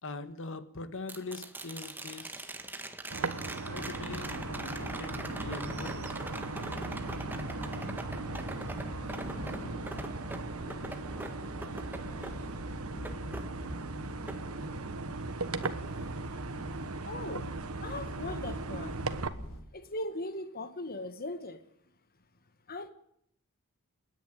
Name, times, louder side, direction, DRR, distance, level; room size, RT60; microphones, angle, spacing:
voice 1, 0.0-2.5 3.2-6.2, left 3 dB, 60° left, 11 dB, 1.8 m, -43 dB
sound 1, 1.1-15.2 15.6-16.7 18.9-19.0, right 1 dB, 10° right, 1.7 m, -43 dB
sound 2, 3.1-19.3, right 3 dB, 85° right, 1.4 m, -38 dB
sound 3, 3.7-19.6, equal, 85° left, 5.5 m, -44 dB
voice 2, 17.1-17.5 17.8-19.0 19.7-21.6 22.7-22.9, left 2 dB, 45° left, 9 dB, 1.6 m, -39 dB
29.5 x 10.5 x 9.2 m, 0.72 s
head